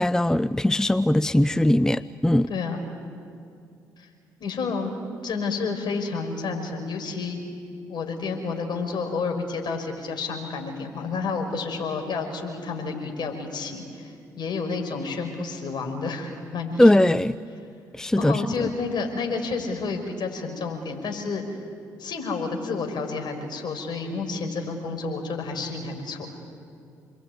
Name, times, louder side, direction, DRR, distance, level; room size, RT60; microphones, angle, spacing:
voice 1, 0.0-2.5 16.8-17.4 18.0-18.4, left 1 dB, 5° left, 15 dB, 0.6 m, -20 dB
voice 2, 2.5-2.8 4.4-4.9 5.2-7.4 7.9-16.9 18.2-21.4 22.0-26.3, left 4 dB, 55° left, 3 dB, 5.6 m, -30 dB
28.0 x 21.5 x 9.6 m, 2.4 s
hypercardioid pair, 45°, 9 cm